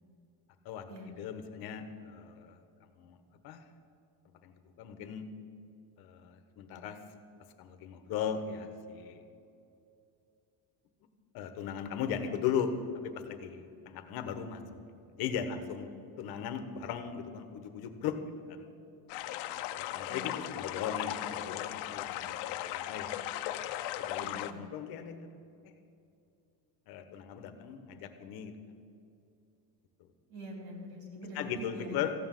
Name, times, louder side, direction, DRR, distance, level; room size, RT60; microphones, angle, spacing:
voice 1, 1.2-2.6 3.0-3.2 3.4-3.6 4.4-5.3 6.0-7.0 7.6-9.2 11.3-12.8 13.0-14.6 15.2-15.9 16.2-18.2 18.5-18.7 19.7-23.2 24.0-25.3 26.9-28.5 31.3-32.1, left 8 dB, 60° left, 9 dB, 1.2 m, -38 dB
sound 1, 19.1-24.5, left 13 dB, 75° left, 0.8 m, -37 dB
voice 2, 20.1-20.4 24.2-24.6 30.3-32.0, right 1 dB, 70° right, 1 dB, 4.0 m, -44 dB
15.0 x 9.6 x 7.6 m, 2.6 s
cardioid pair, 175°, 42 cm